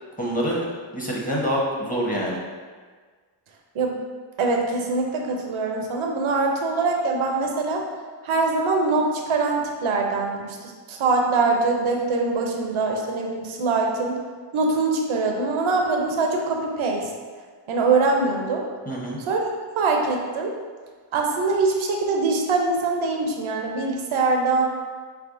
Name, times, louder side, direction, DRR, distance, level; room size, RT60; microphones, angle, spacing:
voice 1, 0.2-0.6 0.9-2.4 18.9-19.2, equal, 15° left, -4 dB, 1.0 m, -25 dB
voice 2, 4.4-7.8 8.2-14.2 14.5-17.1 17.7-18.6 19.2-19.5 19.8-20.5 21.1-24.7, right 3 dB, 75° right, 1 dB, 0.7 m, -23 dB
4.0 x 3.4 x 2.5 m, 1.5 s
cardioid pair, 55°, 49 cm